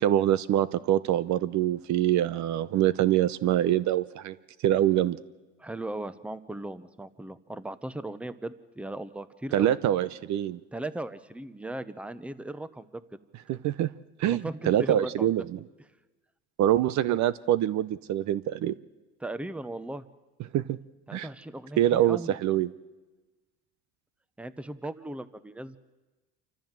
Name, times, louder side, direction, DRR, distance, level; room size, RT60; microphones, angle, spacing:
voice 1, 0.0-4.4 4.6-5.2 9.5-10.6 13.5-13.9 14.2-15.6 16.6-18.7 20.5-20.8 21.1-21.3 21.8-22.7, right 12 dB, 55° right, 17 dB, 0.8 m, -25 dB
voice 2, 5.6-9.7 10.7-13.0 14.2-15.3 19.2-20.0 21.1-22.4 24.4-25.8, right 1 dB, 5° right, 14 dB, 0.9 m, -37 dB
27.5 x 14.0 x 7.5 m, 1.2 s
supercardioid pair, 95°, 34 cm